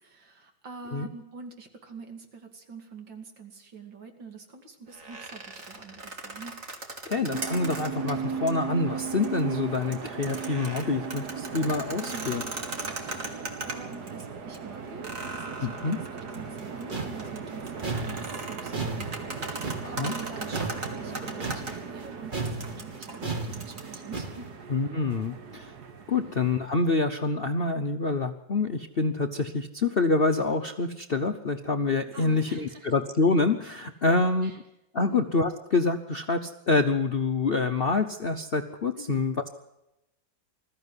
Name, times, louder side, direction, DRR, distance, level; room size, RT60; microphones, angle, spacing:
voice 1, 0.0-6.6 12.0-12.4 13.1-24.5 26.1-26.3 32.1-32.9 34.0-34.1 34.4-34.6 35.0-35.2 38.9-39.2, right 3 dB, 75° right, 4 dB, 3.2 m, -45 dB
sound 1, 4.9-8.1 8.5-8.6 9.1-9.4 9.7-14.2 14.5-14.6 15.0-21.7 22.5-24.0, right 2 dB, 45° right, 2.6 m, -38 dB
voice 2, 7.1-12.4 15.6-16.0 19.8-20.1 24.7-25.7 26.1-34.5 34.9-39.4, left 3 dB, 50° left, 6 dB, 0.7 m, -26 dB
sound 2, 7.3-26.8, right 6 dB, 60° right, 2.1 m, -38 dB
sound 3, 16.3-22.1 22.3-24.5, right 3 dB, 25° right, 1.8 m, -35 dB
20.5 x 14.5 x 9.7 m, 0.93 s
omnidirectional pair, 2.0 m